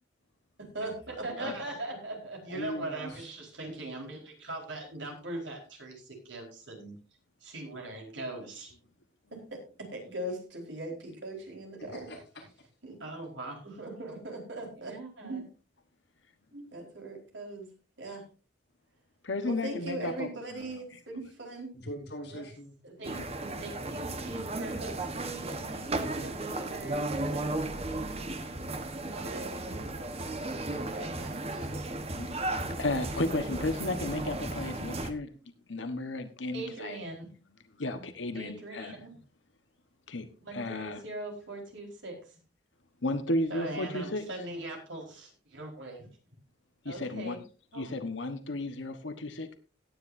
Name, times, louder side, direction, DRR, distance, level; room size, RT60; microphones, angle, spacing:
voice 1, 0.7-7.0 7.4-8.7 9.3-12.1 12.8-15.5 16.5-17.7 18.0-18.2 19.4-21.7 22.3-22.4 22.8-23.3 23.5-28.2 29.0-29.8 30.9-31.7 36.5-37.3 38.3-39.1 40.4-42.4 43.5-46.1 46.8-47.4 47.7-47.9, right 2 dB, 80° right, 4.4 m, -40 dB
voice 2, 2.5-3.3 11.9-12.5 21.7-22.7, equal, 60° left, 6.4 m, -41 dB
voice 3, 19.2-20.8 23.2-23.3 30.4-30.5 32.1-32.5 32.8-35.3 35.7-37.0 37.8-39.0 40.1-41.0 43.0-44.3 46.8-47.4 47.7-49.5, left 2 dB, 80° left, 1.2 m, -34 dB
sound 1, 23.0-35.1, right 2 dB, 35° right, 1.2 m, -35 dB
17.5 x 9.9 x 2.7 m
head